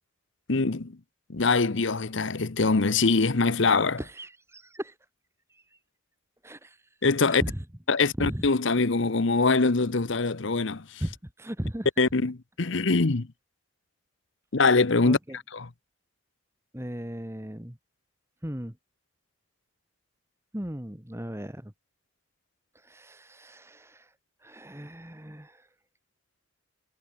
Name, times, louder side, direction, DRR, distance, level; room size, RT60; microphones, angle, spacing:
voice 1, 0.5-0.9 1.3-4.0 7.0-7.4 7.9-10.8 12.0-13.3 14.5-15.2 15.5-15.7, left 3 dB, 60° left, 0.9 m, -23 dB
voice 2, 4.0-4.9 5.5-5.8 6.4-6.8 7.2-7.6 8.0-8.5 11.0-11.9 15.0-15.4 16.7-17.8 18.4-18.7 20.5-21.7 22.7-24.1 24.4-25.7, equal, 10° right, 1.5 m, -37 dB
head